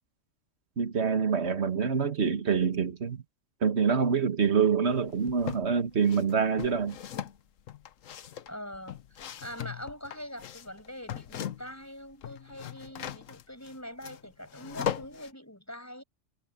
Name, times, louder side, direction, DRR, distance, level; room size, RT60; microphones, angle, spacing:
voice 1, 0.8-3.2 3.6-7.0, right 6 dB, 55° right, 1.9 m, -26 dB
sound 1, 4.9-5.7 6.1-11.8 12.1-15.3, left 9 dB, 85° left, 1.2 m, -39 dB
voice 2, 8.5-16.0, equal, 10° left, 6.3 m, -43 dB
omnidirectional pair, 1.3 m